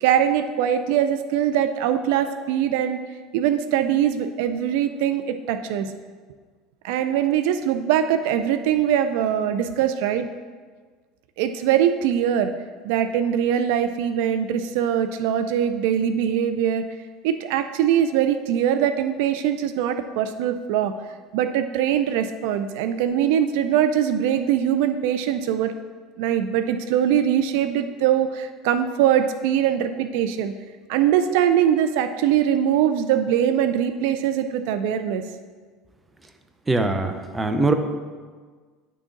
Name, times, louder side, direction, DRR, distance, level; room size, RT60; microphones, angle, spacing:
voice 1, 0.0-3.0 3.3-5.9 6.8-10.3 11.4-12.5 12.8-16.8 17.2-20.9 21.3-25.7 26.2-30.5 30.9-35.2, right 9 dB, 75° right, 10 dB, 0.3 m, -22 dB
voice 2, 36.7-37.7, right 2 dB, 15° right, 7 dB, 0.6 m, -22 dB
9.7 x 3.7 x 3.9 m, 1.5 s
supercardioid pair, 95°, 0 cm